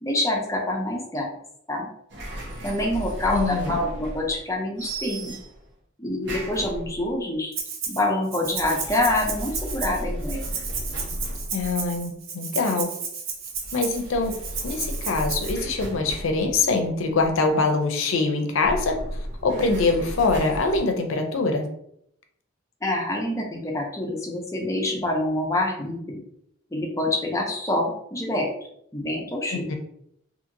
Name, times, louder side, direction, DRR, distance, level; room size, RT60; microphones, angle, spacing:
voice 1, 0.0-1.3 1.7-1.9 2.6-5.4 6.0-7.5 7.9-10.4 22.8-26.0 26.7-28.5 28.9-29.8, left 1 dB, 15° left, 0 dB, 0.5 m, -26 dB
sound 1, 2.1-4.5 4.8-5.7 6.2-7.2 8.4-12.1 13.5-17.5 18.5-20.8, right 1 dB, 60° right, 1.0 m, -35 dB
voice 2, 3.3-3.8 11.5-12.9 13.7-14.4 14.6-21.7 29.5-29.8, left 3 dB, 75° left, 5 dB, 0.5 m, -24 dB
Rattle (instrument), 7.5-8.0 8.3-15.5, right 5 dB, 80° right, 0.7 m, -33 dB
2.7 x 2.7 x 2.6 m, 0.73 s
head